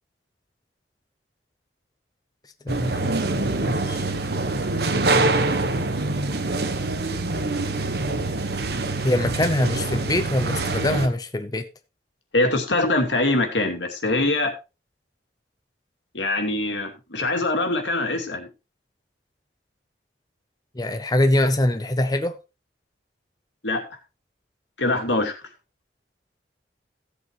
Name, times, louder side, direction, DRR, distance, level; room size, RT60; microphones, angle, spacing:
voice 1, 2.6-3.0 3.3-4.1 5.1-5.9 9.0-11.7 20.7-22.4, left 1 dB, 20° left, 0.6 m, -24 dB
sound 1, 2.7-11.1, right 2 dB, 60° right, 1.1 m, -25 dB
voice 2, 12.3-14.5 16.1-18.5 23.6-24.0 24.8-25.4, left 2 dB, 90° left, 2.5 m, -23 dB
15.5 x 8.1 x 3.0 m
head